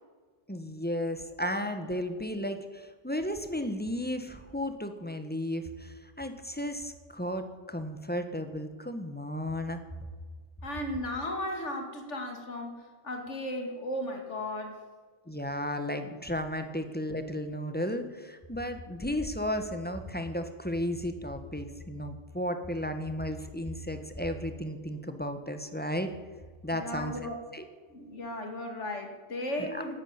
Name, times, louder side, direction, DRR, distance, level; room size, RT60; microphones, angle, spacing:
voice 1, 0.5-9.8 15.3-26.1 26.6-27.6 29.6-29.8, equal, 10° left, 7 dB, 1.2 m, -34 dB
voice 2, 10.6-12.8 13.0-14.8 26.7-27.4 27.9-30.0, left 1 dB, 90° left, 4 dB, 2.4 m, -35 dB
12.0 x 10.0 x 9.6 m, 1.5 s
omnidirectional pair, 1.2 m